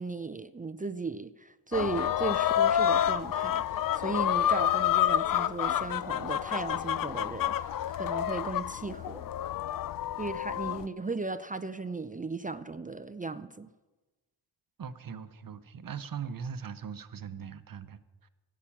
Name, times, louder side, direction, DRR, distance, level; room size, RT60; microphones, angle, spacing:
voice 1, 0.0-9.3 10.2-13.7, right 3 dB, 20° right, 0.5 m, -36 dB
sound 1, 1.7-10.9, left 10 dB, 50° left, 0.4 m, -29 dB
voice 2, 14.8-18.3, right 7 dB, 50° right, 0.9 m, -40 dB
11.5 x 8.4 x 7.2 m
cardioid pair, 60°, 45 cm